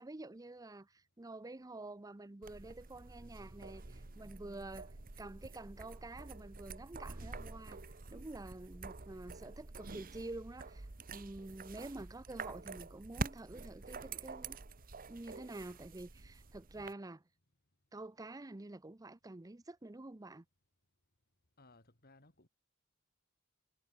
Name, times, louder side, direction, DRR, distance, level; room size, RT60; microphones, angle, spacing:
voice 1, 0.0-7.8 8.1-14.6 15.1-17.2 17.9-20.4, right 2 dB, 15° right, 0.6 m, -48 dB
sound 1, 2.4-16.9, right 3 dB, 40° right, 1.2 m, -47 dB
voice 2, 21.6-22.5, left 2 dB, 45° left, 4.2 m, -62 dB
head